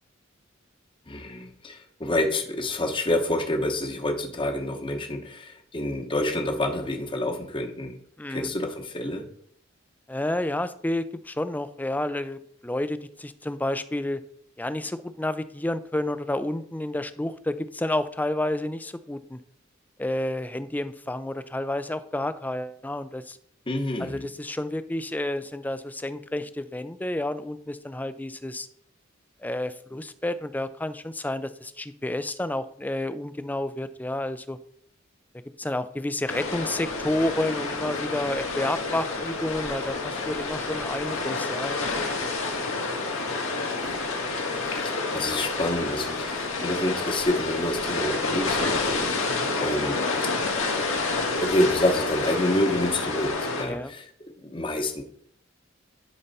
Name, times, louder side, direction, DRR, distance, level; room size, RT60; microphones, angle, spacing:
voice 1, 1.1-8.0 8.3-9.3 23.7-24.3 43.8-44.0 44.6-50.0 51.4-54.1 54.4-55.0, left 1 dB, 25° left, 5 dB, 0.9 m, -28 dB
voice 2, 8.2-8.5 10.1-14.2 14.6-19.4 20.0-23.4 24.0-28.7 29.4-34.6 35.6-42.3 49.3-49.5 53.6-53.9, left 1 dB, 10° left, 12 dB, 0.4 m, -30 dB
sound 1, 36.3-53.6, left 3 dB, 85° left, 1.8 m, -29 dB
11.0 x 5.6 x 4.1 m, 0.65 s
head